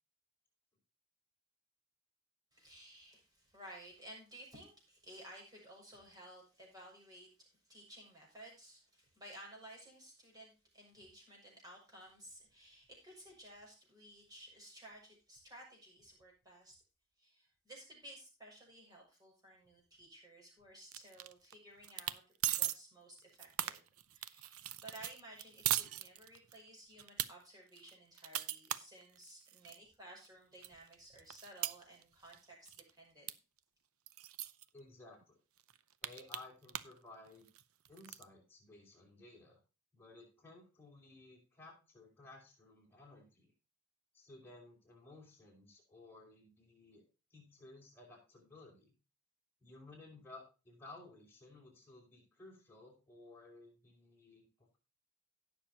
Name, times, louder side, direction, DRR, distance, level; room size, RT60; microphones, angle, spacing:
voice 1, 2.5-16.7 17.2-22.2 22.5-23.8 24.1-33.3, right 1 dB, 15° right, -2 dB, 6.4 m, -56 dB
sound 1, 20.9-21.5 21.8-22.2 22.4-22.8 23.2-26.6 27.0-27.3 27.8-29.8 30.2-30.3 30.6-32.4 32.7-32.9 33.3-33.4 33.6-33.7 34.1-34.6 35.2-35.3 35.6-37.0 37.3-38.2, right 13 dB, 80° right, 0.7 m, -39 dB
voice 2, 34.7-35.4 36.0-37.5 37.9-39.6 39.9-43.5 44.1-47.0 47.3-49.0 49.6-54.8, left 2 dB, 10° left, -2 dB, 5.3 m, -57 dB
17.5 x 6.8 x 2.9 m, 0.32 s
head